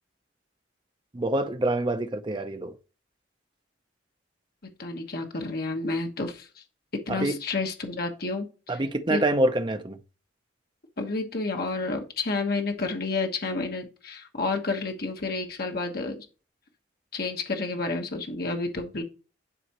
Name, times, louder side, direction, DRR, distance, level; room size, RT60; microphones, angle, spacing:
voice 1, 1.1-2.7 7.1-7.4 8.7-10.0, right 1 dB, 25° right, 0.6 m, -26 dB
voice 2, 4.8-6.5 7.1-8.8 9.1-9.2 11.0-16.3 17.1-19.0, left 3 dB, 55° left, 1.2 m, -30 dB
11.0 x 4.2 x 2.9 m
head